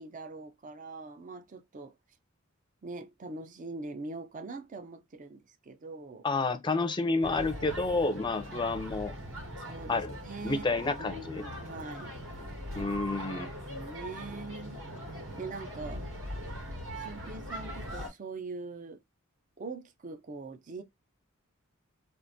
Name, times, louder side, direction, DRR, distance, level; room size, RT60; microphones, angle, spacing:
voice 1, 0.0-1.9 2.8-6.3 9.6-12.1 13.7-14.9 15.4-16.1 16.9-19.0 19.6-20.8, right 3 dB, 40° right, 0.5 m, -42 dB
voice 2, 6.2-9.1 9.9-10.1 10.4-11.4 12.7-13.5, left 3 dB, 20° left, 0.5 m, -30 dB
sound 1, 7.2-18.1, equal, 75° right, 2.3 m, -41 dB
3.7 x 2.4 x 2.6 m
head